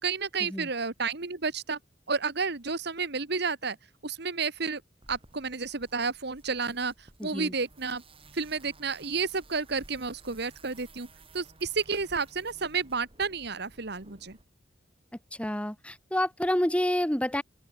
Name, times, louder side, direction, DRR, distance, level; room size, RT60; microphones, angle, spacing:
voice 1, 0.0-1.8 2.1-3.8 4.0-4.8 5.1-6.9 7.2-8.0 8.3-11.1 11.3-14.4, right 4 dB, 60° right, 1.6 m, -31 dB
sound 1, 5.0-14.4, right 2 dB, 30° right, 3.7 m, -55 dB
voice 2, 7.2-7.5 15.4-17.4, left 1 dB, 5° left, 1.4 m, -28 dB
open air
head